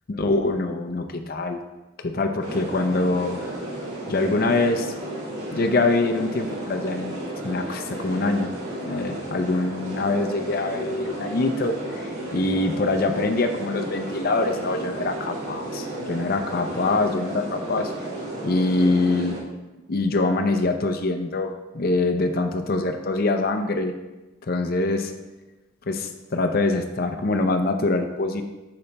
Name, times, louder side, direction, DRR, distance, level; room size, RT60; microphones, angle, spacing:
voice 1, 0.2-1.6 2.0-3.4 4.1-4.9 5.5-7.1 7.4-8.5 8.8-11.8 12.3-17.9 18.4-19.4 19.9-23.9 24.5-25.1 25.9-28.4, left 2 dB, 45° left, 6 dB, 0.5 m, -24 dB
sound 1, 2.4-19.4, right 1 dB, 70° right, 1.9 m, -33 dB
6.7 x 6.7 x 2.2 m, 1.1 s
head